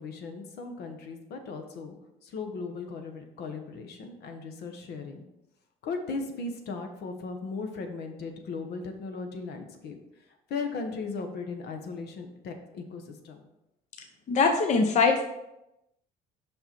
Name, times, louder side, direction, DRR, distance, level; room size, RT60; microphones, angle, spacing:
voice 1, 0.0-1.9 2.2-5.2 5.8-13.4, left 4 dB, 70° left, 5 dB, 1.1 m, -37 dB
voice 2, 14.3-15.2, left 4 dB, 45° left, 4 dB, 0.7 m, -22 dB
5.6 x 5.5 x 4.4 m, 0.87 s
cardioid pair, 110°, 17 cm